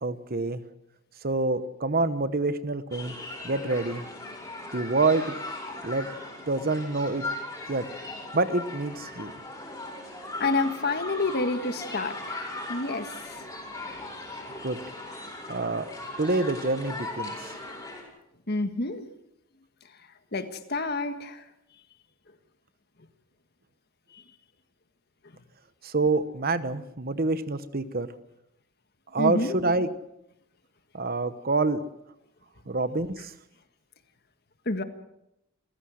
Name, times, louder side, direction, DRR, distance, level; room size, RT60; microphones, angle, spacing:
voice 1, 0.0-0.6 1.2-3.2 3.4-4.0 4.7-5.3 5.8-6.1 6.5-7.2 7.7-7.9 8.3-9.3 14.6-14.8 15.5-15.9 16.2-17.3 25.8-28.1 29.1-29.9 30.9-31.8 32.7-33.3, right 3 dB, 45° right, 13 dB, 1.0 m, -26 dB
sound 1, 2.9-18.0, left 2 dB, 15° left, 5.6 m, -38 dB
voice 2, 10.4-13.1 13.5-13.6 18.5-19.1 20.3-21.4 24.1-24.2 29.2-29.5 34.6-34.8, left 3 dB, 50° left, 9 dB, 1.6 m, -29 dB
28.0 x 15.5 x 6.4 m, 0.84 s
head